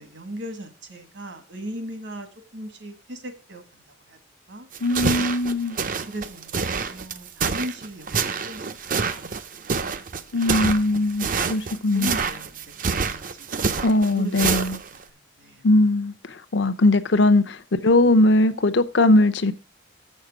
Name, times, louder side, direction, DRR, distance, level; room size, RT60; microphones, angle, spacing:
voice 1, 0.0-2.3 2.5-3.8 4.1-4.2 4.5-4.7 6.1-9.3 10.2-10.3 10.9-11.0 11.9-13.5 14.1-15.6, equal, 65° right, 1.7 m, -38 dB
sound 1, 4.7-15.0, right 5 dB, 45° right, 0.6 m, -27 dB
voice 2, 4.8-5.8 10.3-12.1 13.8-14.8 15.6-17.6 17.8-19.5, left 2 dB, 70° left, 0.7 m, -20 dB
7.3 x 6.5 x 6.0 m
head